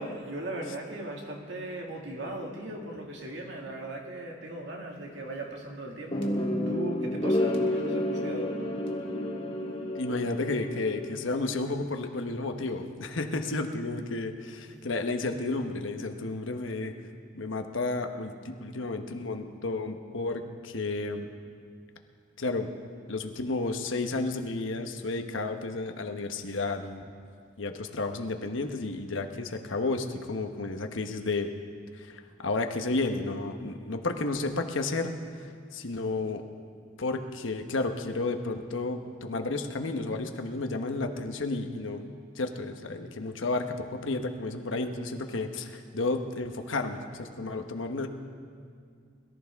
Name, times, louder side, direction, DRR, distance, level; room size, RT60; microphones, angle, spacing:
voice 1, 0.0-8.6, right 1 dB, 65° right, 0 dB, 2.2 m, -38 dB
sound 1, 6.1-11.2, left 1 dB, 30° left, 1.7 m, -30 dB
voice 2, 9.9-16.9 17.3-21.3 22.4-22.7 23.1-27.0 27.6-31.5 31.9-36.4 37.0-42.0 42.4-48.1, left 3 dB, 85° left, 5 dB, 1.1 m, -32 dB
22.0 x 14.0 x 3.6 m, 2.2 s
head